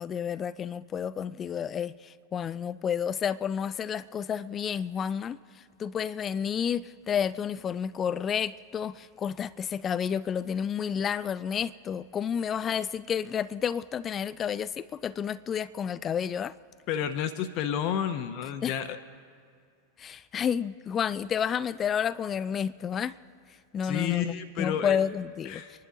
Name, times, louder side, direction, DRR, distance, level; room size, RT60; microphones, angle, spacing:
voice 1, 0.0-5.4 5.8-16.5 18.6-18.7 20.0-23.2 23.7-24.3 24.6-25.6, left 8 dB, 25° left, 0.3 m, -30 dB
voice 2, 16.9-19.0 23.8-25.0 25.4-25.7, left 9 dB, 40° left, 0.8 m, -30 dB
26.0 x 11.5 x 3.7 m
figure-of-eight pair, 90°, 0 cm